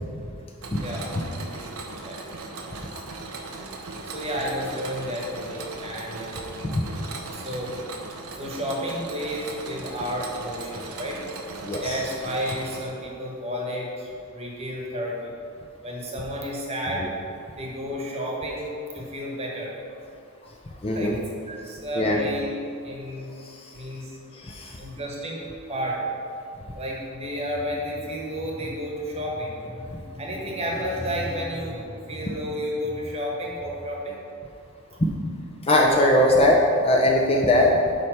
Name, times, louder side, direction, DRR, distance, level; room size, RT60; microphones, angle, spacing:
Mechanisms, 0.6-12.8, right 3 dB, 80° right, 0.8 m, -38 dB
voice 1, 4.0-6.4 7.3-7.7 8.3-11.2 11.8-15.3 15.8-17.0 17.6-19.7 20.9-21.1 21.5-22.5 22.8-23.3 23.7-24.1 24.8-25.4 25.7-26.0 26.7-34.2 34.9-35.0, equal, 30° right, -2 dB, 1.2 m, -31 dB
voice 2, 11.6-12.0 17.0-17.1 20.8-21.2 21.9-22.2 23.3-23.8 24.3-24.8 35.6-37.8, left 1 dB, 25° left, -1 dB, 0.6 m, -21 dB
8.7 x 3.3 x 5.7 m, 2.5 s
head